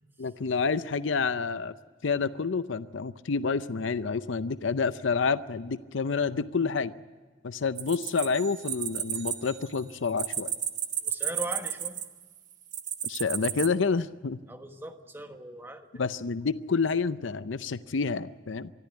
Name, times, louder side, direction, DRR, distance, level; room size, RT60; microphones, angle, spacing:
voice 1, 0.2-1.7 2.0-6.9 7.4-10.5 13.0-14.4 15.9-18.7, left 5 dB, 70° left, 14 dB, 0.6 m, -28 dB
sound 1, 7.8-9.3 9.6-12.2 12.7-13.7, right 10 dB, 40° right, 1.0 m, -32 dB
sound 2, 8.3-10.5, right 11 dB, 80° right, 4.7 m, -50 dB
voice 2, 11.0-12.0 14.5-15.9, right 1 dB, 10° right, 6 dB, 1.3 m, -39 dB
23.5 x 14.0 x 9.3 m, 1.4 s
head